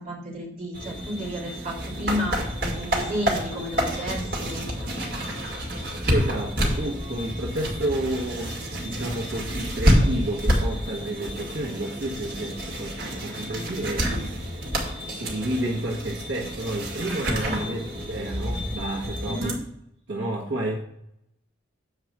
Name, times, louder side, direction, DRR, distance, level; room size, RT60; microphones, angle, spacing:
voice 1, 0.0-2.4 2.7-4.6 17.4-17.6 19.2-19.6, equal, 35° right, -6 dB, 3.2 m, -32 dB
sound 1, 0.7-19.5, equal, 50° right, 2.3 m, -28 dB
voice 2, 6.1-14.5 15.1-19.6 20.1-20.7, right 1 dB, 65° right, -3 dB, 1.4 m, -31 dB
7.9 x 4.8 x 6.0 m, 0.75 s
head